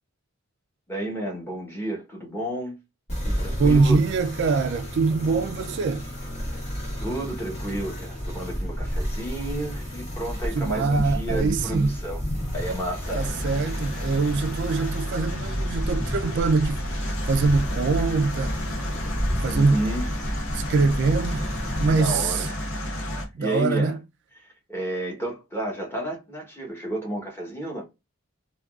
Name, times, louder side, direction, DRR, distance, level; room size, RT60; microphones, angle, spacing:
voice 1, 0.9-2.8 3.2-4.0 7.0-12.2 12.5-13.4 19.5-20.0 21.9-22.5 23.4-24.0 24.4-27.8, right 1 dB, 10° left, 1.0 m, -31 dB
sound 1, 3.1-21.9, equal, 35° left, 1.7 m, -31 dB
voice 2, 3.6-6.1 10.5-12.0 13.1-18.7 19.4-19.8 20.5-22.5 23.3-23.9, right 4 dB, 55° right, 0.3 m, -23 dB
sound 2, 13.0-23.3, equal, 75° left, 0.8 m, -31 dB
3.5 x 2.3 x 2.3 m
head